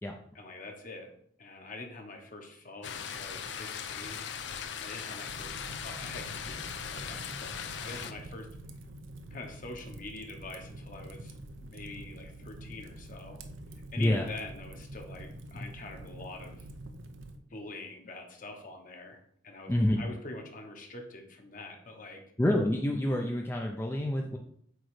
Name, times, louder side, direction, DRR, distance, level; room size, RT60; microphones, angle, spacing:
voice 1, 0.3-1.1 1.4-4.3 4.8-5.6 5.8-8.5 9.3-13.4 13.9-16.7 17.5-19.2 19.4-22.2, left 2 dB, 45° left, 3 dB, 1.1 m, -45 dB
sound 1, 2.8-8.1, left 7 dB, 65° left, 0.5 m, -39 dB
Fire, 5.3-17.4, right 1 dB, 85° right, 0.7 m, -46 dB
voice 2, 19.7-20.0 22.4-24.4, left 1 dB, 10° left, 1 dB, 0.5 m, -27 dB
7.9 x 3.1 x 4.8 m, 0.66 s
head